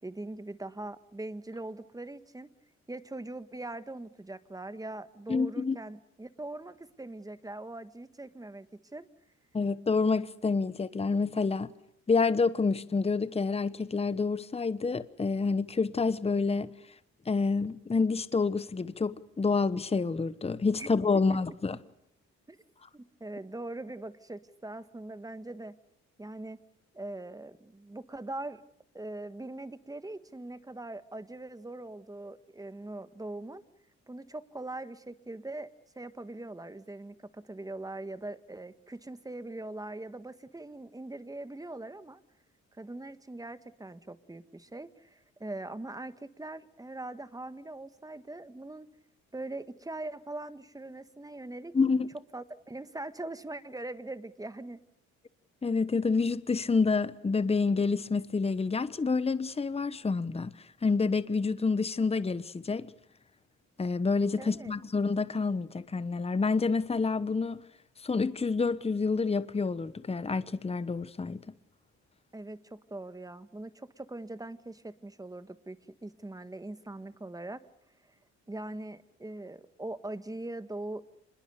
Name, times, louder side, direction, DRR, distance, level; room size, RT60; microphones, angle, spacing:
voice 1, 0.0-2.5 2.9-8.7 8.9-9.1 20.8-20.9 21.3-21.4 21.7-21.8 22.5-22.6 22.9-25.8 26.2-26.6 26.9-28.6 28.9-33.6 34.1-42.2 42.7-48.9 49.3-51.7 52.3-54.8 64.4-64.7 72.3-77.6 78.5-81.1, right 2 dB, 10° right, 1.5 m, -41 dB
voice 2, 5.3-5.8 9.5-11.7 12.1-16.7 17.3-21.8 51.7-52.1 55.6-60.5 60.8-62.9 63.8-67.6 68.0-71.4, left 4 dB, 20° left, 1.0 m, -28 dB
26.0 x 21.5 x 6.7 m
cardioid pair, 90°, 30 cm